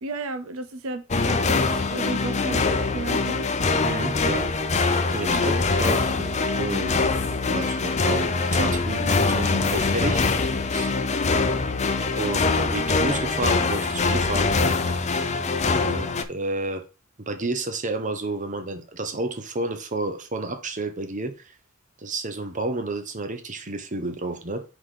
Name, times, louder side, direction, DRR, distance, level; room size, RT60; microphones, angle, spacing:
voice 1, 0.0-3.5 5.3-5.6 15.5-15.6, right 3 dB, 85° right, 0.7 m, -34 dB
sound 1, 1.1-16.2, left 3 dB, 35° left, 0.6 m, -23 dB
voice 2, 3.8-4.5 5.1-6.9 7.5-10.9 12.2-14.5 14.9-15.0 15.6-16.8 17.2-21.5 22.0-24.6, right 2 dB, 35° right, 0.9 m, -31 dB
4.9 x 4.3 x 5.5 m
head